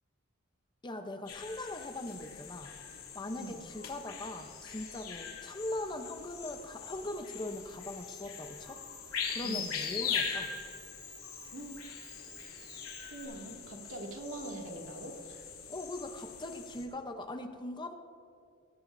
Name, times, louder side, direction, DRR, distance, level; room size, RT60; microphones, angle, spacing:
voice 1, 0.8-2.7 3.1-8.8 9.3-10.5 15.7-17.9, left 1 dB, 20° left, 6 dB, 0.8 m, -40 dB
sound 1, 1.3-16.8, left 6 dB, 80° left, 2.9 m, -41 dB
Camera, 6.2-13.2, right 8 dB, 40° right, 4.3 m, -59 dB
voice 2, 13.0-15.4, right 1 dB, 65° right, 0 dB, 2.4 m, -43 dB
19.5 x 17.5 x 2.7 m, 2.3 s
head